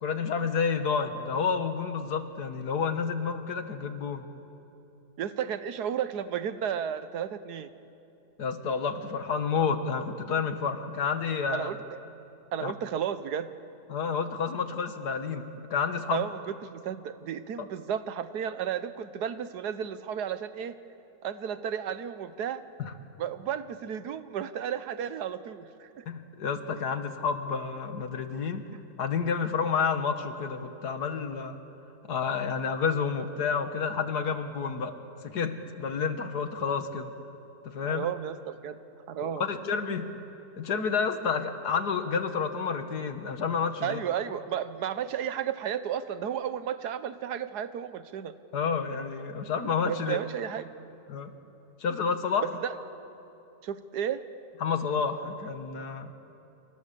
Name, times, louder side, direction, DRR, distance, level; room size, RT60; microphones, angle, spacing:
voice 1, 0.0-4.3 8.4-11.7 12.6-12.7 13.9-16.3 22.8-22.9 26.1-28.7 29.0-31.6 32.0-34.9 35.2-37.1 37.7-38.1 39.2-40.1 40.6-44.0 48.5-50.2 51.1-51.3 51.8-52.4 54.6-56.1, left 6 dB, 80° left, 8 dB, 2.0 m, -30 dB
voice 2, 5.2-7.7 11.5-11.8 12.5-13.5 16.1-20.8 21.2-22.6 23.2-26.0 37.8-38.8 39.1-39.4 43.8-48.3 49.9-50.7 52.4-52.8 53.6-54.2, right 9 dB, 90° right, 12 dB, 1.5 m, -33 dB
28.0 x 25.0 x 6.9 m, 2.8 s
omnidirectional pair, 1.7 m